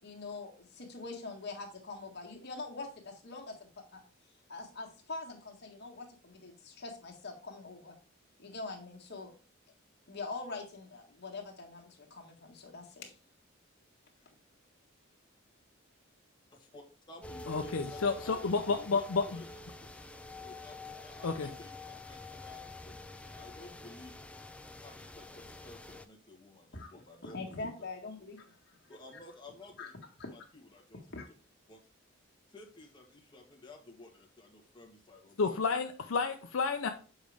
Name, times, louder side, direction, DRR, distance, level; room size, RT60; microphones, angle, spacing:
voice 1, 0.0-4.0 4.5-8.0 8.4-9.3 10.1-13.1 26.7-26.9 27.2-28.8 29.8-29.9 30.2-30.3 31.1-31.3, left 3 dB, 55° left, 0 dB, 1.7 m, -44 dB
voice 2, 16.5-20.0 20.4-24.1 24.8-27.7 28.9-29.9 30.3-30.4 30.7-31.0 31.7-31.8 32.5-35.6, left 2 dB, 25° left, 0 dB, 1.4 m, -53 dB
sound 1, 17.2-26.1, left 2 dB, 5° left, 0.4 m, -47 dB
voice 3, 17.5-19.4 21.2-21.5 35.4-36.9, left 4 dB, 75° left, 6 dB, 0.6 m, -31 dB
7.2 x 5.1 x 3.4 m, 0.37 s
head